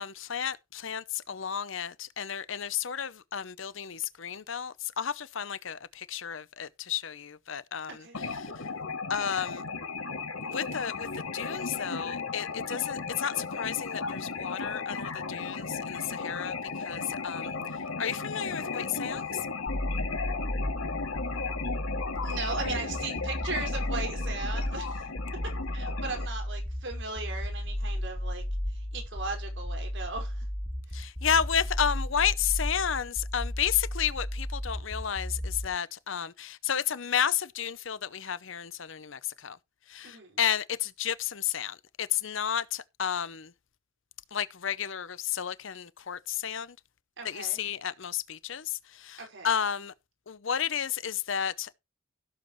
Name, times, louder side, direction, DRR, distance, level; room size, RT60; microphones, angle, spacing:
voice 1, 0.0-8.5 9.1-9.6 10.4-11.1 11.3-17.5 18.0-19.3 30.9-39.6 39.9-43.5 44.3-46.8 47.2-49.9 50.3-51.7, left 8 dB, 65° left, 0.7 m, -32 dB
sound 1, 8.1-26.3, left 4 dB, 90° left, 2.5 m, -35 dB
sound 2, 19.7-35.7, equal, 10° left, 2.2 m, -33 dB
voice 2, 22.2-25.0 25.7-28.4 28.9-30.3 40.0-40.4 47.2-47.6 49.2-49.5, right 3 dB, 60° right, 5.2 m, -37 dB
16.0 x 7.7 x 3.2 m
head